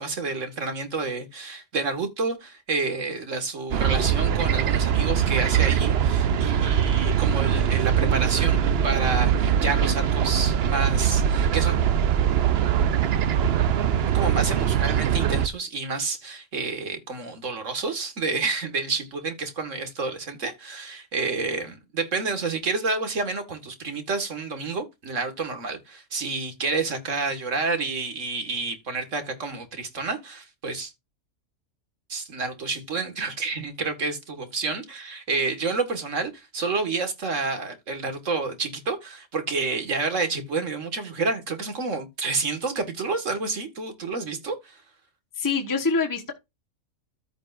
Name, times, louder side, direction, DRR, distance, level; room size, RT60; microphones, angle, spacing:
voice 1, 0.0-11.8 14.1-30.9 32.1-44.8, right 4 dB, 75° right, 2.1 m, -29 dB
sound 1, 3.7-15.5, right 9 dB, 60° right, 0.8 m, -22 dB
voice 2, 45.4-46.3, left 4 dB, 15° left, 1.3 m, -25 dB
14.0 x 5.2 x 2.5 m
omnidirectional pair, 1.3 m